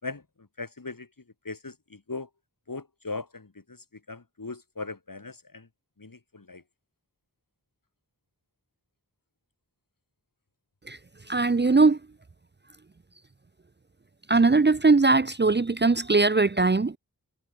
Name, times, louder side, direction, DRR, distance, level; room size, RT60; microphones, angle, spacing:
voice 1, 0.0-1.1 1.4-2.3 2.7-5.7 6.0-6.6, left 3 dB, 60° left, 7.8 m, -39 dB
voice 2, 11.3-12.0 14.3-17.0, right 3 dB, 30° right, 0.7 m, -20 dB
cardioid pair, 40°, 38 cm